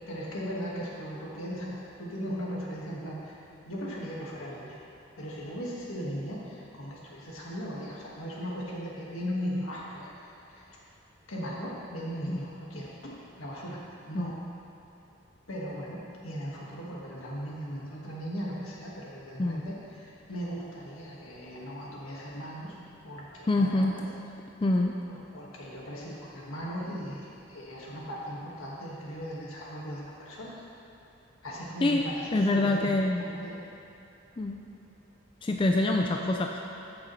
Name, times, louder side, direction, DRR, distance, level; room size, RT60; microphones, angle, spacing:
voice 1, 0.1-4.8 5.2-10.7 11.3-13.1 13.4-13.8 14.1-14.3 15.5-22.8 23.0-24.0 25.1-30.5 31.4-33.5, equal, 80° left, -5 dB, 1.8 m, -38 dB
voice 2, 23.5-23.9 24.6-24.9 31.8-32.1 32.3-33.2 34.4-34.6 35.4-36.6, left 2 dB, 25° left, 2 dB, 0.3 m, -25 dB
14.5 x 6.0 x 3.2 m, 2.9 s
head